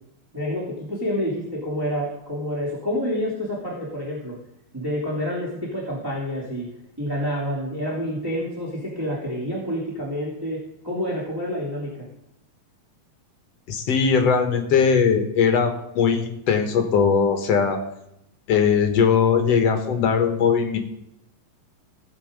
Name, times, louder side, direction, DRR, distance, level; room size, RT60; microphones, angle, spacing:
voice 1, 0.3-4.4 4.7-6.7 7.0-11.9, equal, 5° right, -5 dB, 2.3 m, -28 dB
voice 2, 13.7-17.8 18.5-20.8, left 6 dB, 60° left, 5 dB, 1.9 m, -20 dB
17.0 x 8.2 x 5.2 m, 0.81 s
omnidirectional pair, 4.2 m